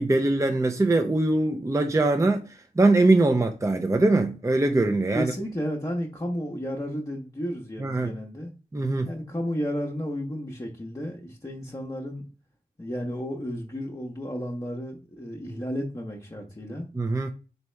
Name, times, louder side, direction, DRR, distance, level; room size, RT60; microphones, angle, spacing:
voice 1, 0.0-5.3 7.8-8.1 8.7-9.1 16.9-17.3, right 2 dB, 20° right, 0.6 m, -22 dB
voice 2, 5.1-8.5 9.1-12.3 12.8-16.9, equal, 20° left, 0.9 m, -32 dB
4.0 x 3.4 x 3.2 m
cardioid pair, 40°, 17 cm